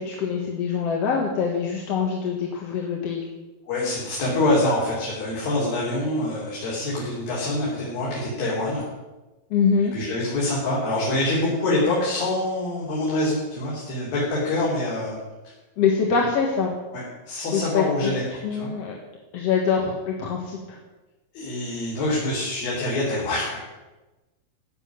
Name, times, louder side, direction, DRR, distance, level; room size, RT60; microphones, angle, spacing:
voice 1, 0.0-3.2 9.5-9.9 15.8-16.7 17.5-18.1 18.4-18.9 19.3-20.8, left 6 dB, 50° left, 0 dB, 2.3 m, -24 dB
voice 2, 3.7-8.9 9.9-15.2 15.4-15.5 16.9-18.2 18.5-18.7 21.3-23.6, left 2 dB, 85° left, -7 dB, 5.4 m, -25 dB
16.5 x 7.0 x 9.7 m, 1.1 s
omnidirectional pair, 4.0 m